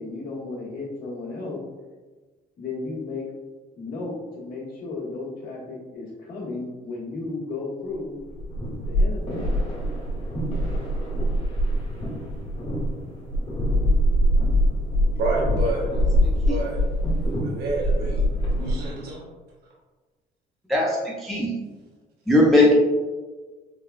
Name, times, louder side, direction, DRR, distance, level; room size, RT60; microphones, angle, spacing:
voice 1, 0.0-1.6 2.6-3.2 3.8-8.2 8.9-9.6, left 3 dB, 60° left, -5 dB, 1.3 m, -34 dB
sound 1, 8.2-19.0, equal, 40° left, 1.5 m, -24 dB
voice 2, 15.1-15.9 16.5-16.8 17.4-19.3, right 2 dB, 70° right, -3 dB, 0.6 m, -29 dB
voice 3, 20.7-21.5 22.3-22.7, left 1 dB, ahead, -4 dB, 0.5 m, -18 dB
4.7 x 2.2 x 2.3 m, 1.3 s
cardioid pair, 110°, 17 cm